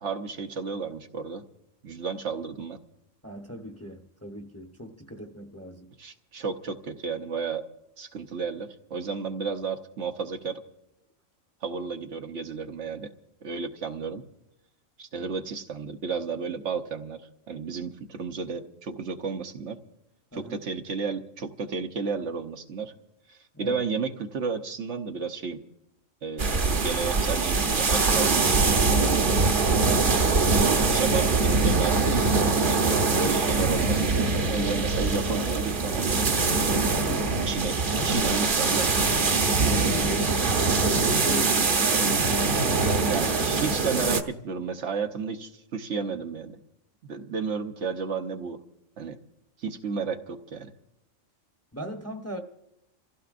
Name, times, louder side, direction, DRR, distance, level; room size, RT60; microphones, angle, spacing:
voice 1, 0.0-1.4 1.8-2.8 6.0-7.7 8.0-10.6 11.6-13.1 13.4-14.2 15.0-17.2 17.5-19.8 20.3-22.9 23.3-25.6 26.2-29.3 30.1-30.4 30.9-36.4 37.5-37.8 38.0-39.0 43.1-46.6 47.1-48.6 49.0-49.2 49.6-50.7, right 5 dB, 65° right, 6 dB, 1.2 m, -32 dB
voice 2, 3.2-5.9 20.3-20.6 23.5-23.8 36.9-37.4 37.9-38.5 39.3-43.1 43.9-44.1 51.7-52.4, equal, 15° left, 3 dB, 0.9 m, -38 dB
sound 1, 26.4-44.2, right 3 dB, 45° right, 1.0 m, -23 dB
28.0 x 15.5 x 2.6 m, 0.87 s
omnidirectional pair, 1.3 m